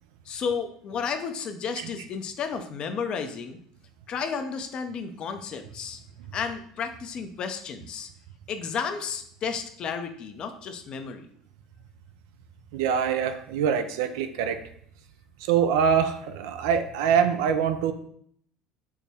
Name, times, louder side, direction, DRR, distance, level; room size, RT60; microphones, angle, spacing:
voice 1, 0.3-3.6 4.1-6.0 6.3-8.1 8.5-11.3, left 6 dB, 45° left, 7 dB, 0.5 m, -32 dB
voice 2, 12.7-14.6 15.4-17.9, right 7 dB, 70° right, 9 dB, 0.3 m, -24 dB
4.5 x 2.2 x 3.4 m, 0.64 s
hypercardioid pair, 65°, 2 cm